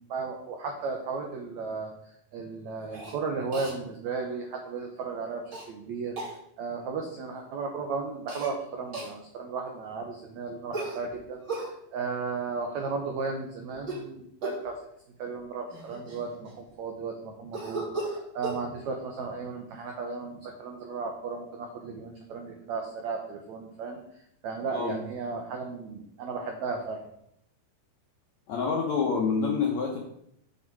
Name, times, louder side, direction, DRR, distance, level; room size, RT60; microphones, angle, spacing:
voice 1, 0.0-6.2 6.6-14.8 15.2-24.0 24.4-27.0, right 4 dB, 80° right, 2 dB, 1.6 m, -35 dB
Cough, 2.9-3.2 3.5-3.7 5.5-5.7 6.2-6.4 8.3-8.6 8.9-9.1 10.7-11.7 13.8-14.1 14.4-14.7 15.4-15.5 15.7-16.7 17.5-18.6, right 2 dB, 30° right, 2.8 m, -35 dB
voice 2, 28.5-30.0, left 5 dB, 75° left, -1 dB, 1.6 m, -27 dB
7.9 x 6.5 x 4.6 m, 0.73 s
omnidirectional pair, 4.6 m